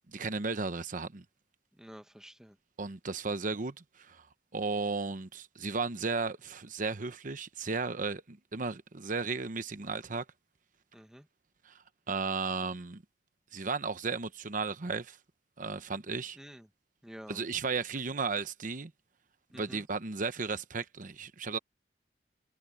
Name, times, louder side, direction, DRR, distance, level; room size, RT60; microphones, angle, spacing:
voice 1, 0.1-1.2 2.8-4.2 4.5-10.2 11.7-11.8 12.1-13.0 13.5-15.2 15.6-16.4 17.3-18.9 19.5-21.6, right 4 dB, 50° right, 0.9 m, -34 dB
voice 2, 1.8-2.6 10.9-11.3 16.3-16.7 17.0-17.4 19.5-19.9, equal, 5° right, 1.0 m, -49 dB
head